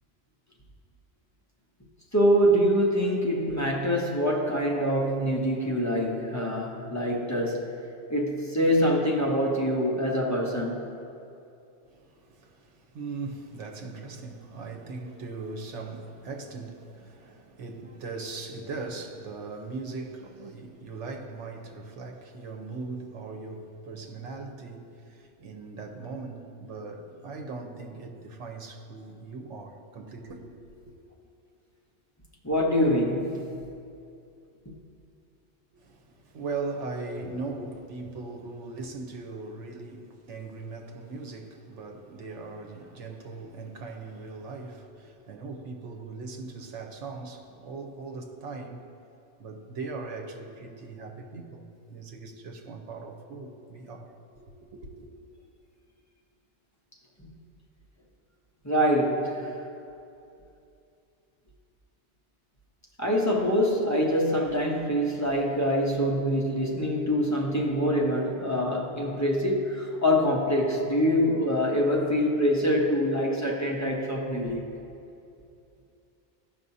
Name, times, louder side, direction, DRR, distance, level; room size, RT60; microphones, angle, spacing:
voice 1, 2.1-7.7 8.1-10.8 32.4-33.6 57.2-57.3 58.6-59.6 63.0-74.6, equal, 15° left, 0.8 m, -25 dB
voice 2, 11.8-30.5 30.9-31.0 35.7-48.8 49.4-55.1, right 3 dB, 80° right, 1.1 m, -39 dB
15.5 x 5.8 x 2.7 m
omnidirectional pair, 1.2 m